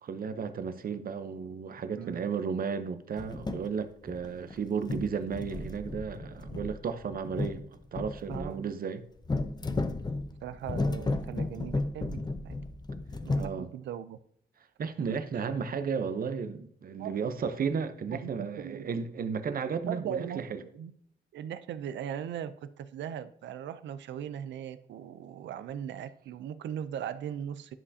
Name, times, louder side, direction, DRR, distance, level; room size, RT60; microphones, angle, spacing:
voice 1, 0.0-7.6 7.9-9.0 13.4-13.7 14.8-20.6, right 6 dB, 55° right, 0.7 m, -34 dB
voice 2, 2.0-2.3 8.3-8.7 10.4-12.6 13.2-14.2 15.3-15.4 17.0-17.1 18.0-18.9 19.9-20.9 21.3-27.8, right 9 dB, 90° right, 0.5 m, -39 dB
sound 1, 3.1-3.7 4.1-4.6 4.8-8.5 9.2-13.5, left 2 dB, 25° left, 0.6 m, -34 dB
10.5 x 5.6 x 2.7 m
cardioid pair, 95°, 18 cm